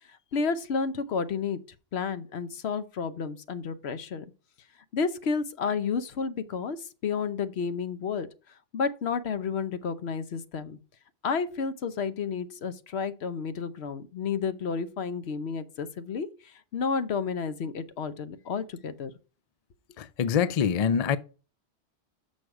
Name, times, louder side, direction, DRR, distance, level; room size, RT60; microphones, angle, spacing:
voice 1, 0.3-1.6 1.9-4.2 4.9-6.8 7.0-8.3 8.7-10.8 11.2-16.3 16.7-19.1, left 5 dB, 75° left, 1.1 m, -31 dB
voice 2, 20.0-21.2, left 7 dB, 50° left, 0.4 m, -25 dB
6.5 x 6.3 x 4.8 m
omnidirectional pair, 1.1 m